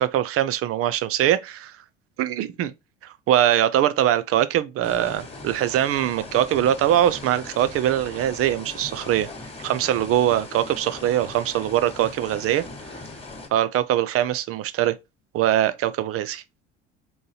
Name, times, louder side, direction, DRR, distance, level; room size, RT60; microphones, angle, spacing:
voice 1, 0.0-1.7 2.2-2.7 3.3-9.3 9.6-12.6 13.5-15.0 15.3-16.4, right 12 dB, 40° right, 0.6 m, -22 dB
sound 1, 4.8-13.5, left 2 dB, 15° left, 1.5 m, -39 dB
3.9 x 3.8 x 2.8 m
hypercardioid pair, 70°, 35 cm